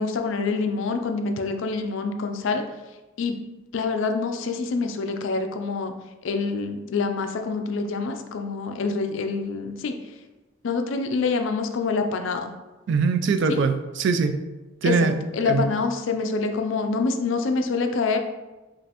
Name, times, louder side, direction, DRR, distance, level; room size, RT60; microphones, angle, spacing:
voice 1, 0.0-2.6 3.2-3.4 3.7-5.9 6.2-9.9 10.6-12.5 13.5-13.6 14.8-15.1 15.3-18.2, left 4 dB, 65° left, 6 dB, 0.4 m, -26 dB
voice 2, 12.9-14.3 14.8-15.1 15.4-15.7, right 4 dB, 60° right, 8 dB, 0.3 m, -22 dB
5.1 x 2.5 x 2.8 m, 1.1 s
head